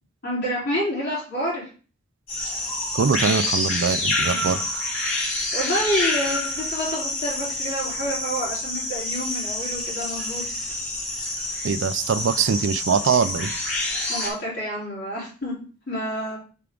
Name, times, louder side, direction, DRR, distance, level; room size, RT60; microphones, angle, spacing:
voice 1, 0.2-1.7 4.3-4.4 5.5-10.4 14.1-16.4, equal, 50° left, -4 dB, 3.8 m, -28 dB
sound 1, 2.3-14.3, left 2 dB, 65° left, 3.4 m, -27 dB
voice 2, 2.9-4.8 11.6-13.5, right 6 dB, 65° right, 15 dB, 0.4 m, -23 dB
6.9 x 4.6 x 3.8 m, 0.38 s
head